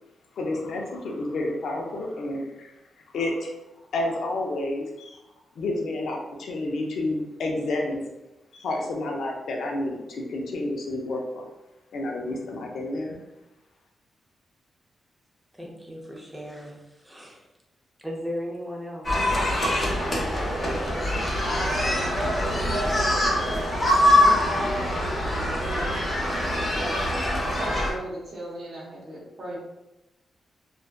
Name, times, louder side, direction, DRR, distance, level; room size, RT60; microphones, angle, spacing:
voice 1, 0.4-2.7 3.1-3.5 3.9-5.1 5.6-8.0 8.5-11.4 11.9-13.2, left 2 dB, 75° left, 1 dB, 0.5 m, -30 dB
voice 2, 15.5-17.5 18.0-19.2, equal, 5° right, -1 dB, 0.5 m, -36 dB
sound 1, 19.0-27.9, left 1 dB, 30° left, 0.8 m, -24 dB
voice 3, 24.1-24.8 25.7-26.0 26.8-26.9 27.6-29.6, right 1 dB, 50° right, -5 dB, 0.6 m, -36 dB
2.5 x 2.1 x 2.2 m, 0.97 s
cardioid pair, 90°, 0 cm